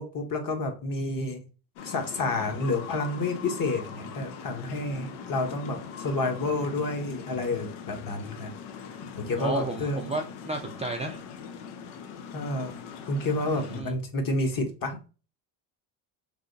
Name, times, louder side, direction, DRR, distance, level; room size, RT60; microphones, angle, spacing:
voice 1, 0.0-1.4 1.8-8.5 9.0-10.0 12.3-12.7 13.1-15.0, left 2 dB, 40° left, 4 dB, 1.1 m, -30 dB
sound 1, 1.8-13.8, left 6 dB, 80° left, 0.7 m, -41 dB
voice 2, 9.4-11.2 13.6-13.9, right 2 dB, 15° right, 1 dB, 0.4 m, -32 dB
3.3 x 2.8 x 2.7 m, 0.34 s
supercardioid pair, 70°, 49 cm